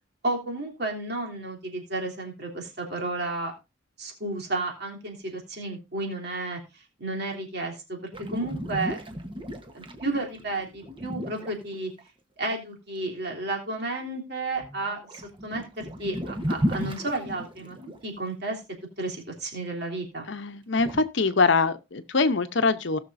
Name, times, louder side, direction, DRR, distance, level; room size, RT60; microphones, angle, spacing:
voice 1, 0.2-3.5 4.0-9.0 9.7-11.9 12.4-17.7 18.0-18.6 19.0-20.3, right 2 dB, 55° right, 3.2 m, -32 dB
sound 1, 8.1-12.0 14.6-14.8 15.0-18.0 20.8-21.0, equal, 25° right, 1.1 m, -34 dB
voice 2, 20.3-23.0, left 4 dB, 65° left, 0.8 m, -23 dB
18.0 x 6.5 x 2.6 m
head